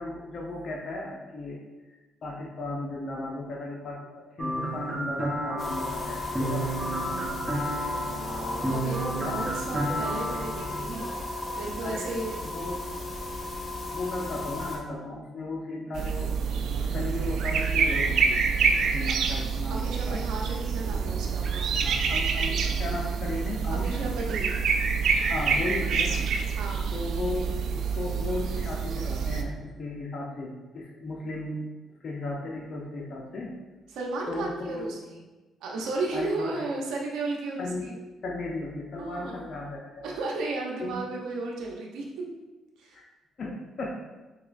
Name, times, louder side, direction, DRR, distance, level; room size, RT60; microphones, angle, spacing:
voice 1, 0.0-1.6 2.2-7.4 9.1-9.5 11.8-12.1 12.4-12.8 13.9-16.3 16.8-18.4 18.8-20.2 21.8-24.0 25.2-26.3 26.9-31.7 32.0-33.5 34.3-34.9 36.1-36.5 37.6-37.9 38.2-40.2 40.8-41.0 42.9-43.1 43.4-44.0, left 2 dB, 50° left, -2 dB, 0.6 m, -35 dB
sound 1, 4.4-10.8, right 1 dB, 15° right, 0.7 m, -31 dB
sound 2, 5.6-14.8, left 2 dB, 35° left, 0.9 m, -35 dB
voice 2, 8.1-11.1 11.6-12.4 19.7-21.7 23.7-24.5 26.5-26.9 33.9-35.2 35.6-38.0 39.0-39.4 40.0-42.0 42.8-43.0, right 3 dB, 90° right, -1 dB, 0.7 m, -34 dB
sound 3, 15.9-29.4, right 5 dB, 70° right, 0.3 m, -27 dB
4.7 x 3.0 x 2.5 m, 1.1 s
cardioid pair, 90°, 0 cm